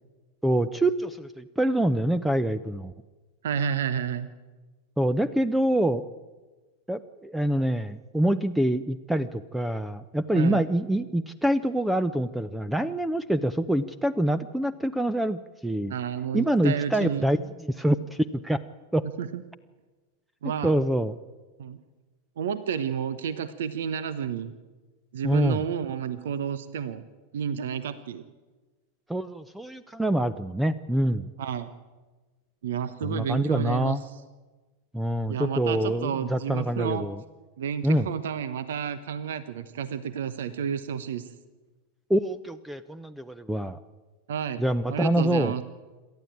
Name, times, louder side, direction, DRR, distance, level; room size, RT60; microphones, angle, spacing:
voice 1, 0.4-2.9 5.0-6.0 6.9-15.9 16.3-18.6 18.9-19.1 20.4-21.2 25.2-25.6 29.1-31.3 33.0-34.0 34.9-37.2 37.8-38.1 42.1-43.8 44.6-45.6, right 1 dB, 5° right, 16 dB, 0.7 m, -26 dB
voice 2, 3.4-4.3 10.3-10.7 15.9-17.2 19.2-19.4 20.4-20.8 21.6-21.8 22.4-24.5 25.1-27.0 27.3-28.3 31.4-31.7 32.6-34.0 35.3-37.1 37.6-41.2 44.3-44.6 44.9-45.6, right 7 dB, 60° right, 14 dB, 1.0 m, -30 dB
27.5 x 13.0 x 8.8 m, 1.3 s
figure-of-eight pair, 90°, 0 cm